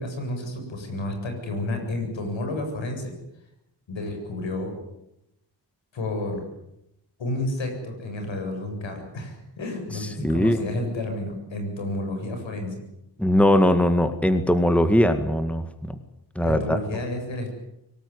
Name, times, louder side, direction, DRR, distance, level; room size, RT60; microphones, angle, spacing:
voice 1, 0.0-3.1 3.9-4.7 5.9-6.4 7.2-12.8 16.4-17.5, left 2 dB, 85° left, 4 dB, 7.9 m, -31 dB
voice 2, 10.2-10.6 13.2-15.9 16.4-16.8, left 1 dB, 5° left, 9 dB, 1.9 m, -20 dB
24.0 x 18.5 x 9.9 m, 0.86 s
wide cardioid pair, 105°, 44 cm